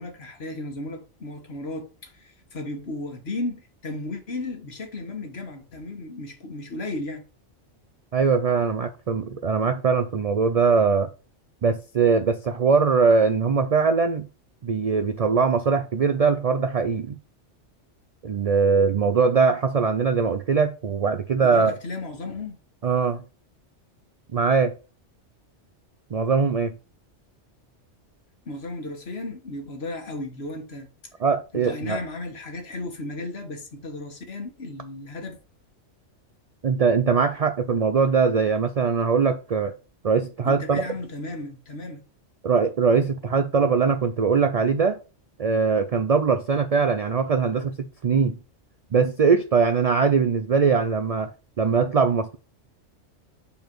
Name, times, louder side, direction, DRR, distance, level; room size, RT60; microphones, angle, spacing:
voice 1, 0.0-7.2 21.4-22.6 28.4-30.9 31.5-35.4 40.4-42.0, left 2 dB, 60° left, 1.5 m, -34 dB
voice 2, 8.1-11.1 11.6-14.3 14.6-17.2 18.2-21.7 22.8-23.2 24.3-24.7 26.1-26.7 31.2-32.0 36.6-39.7 40.0-40.8 42.4-45.0 45.4-48.4 48.9-51.3 51.6-52.4, right 5 dB, 60° right, 0.4 m, -21 dB
5.1 x 4.5 x 6.0 m
omnidirectional pair, 1.2 m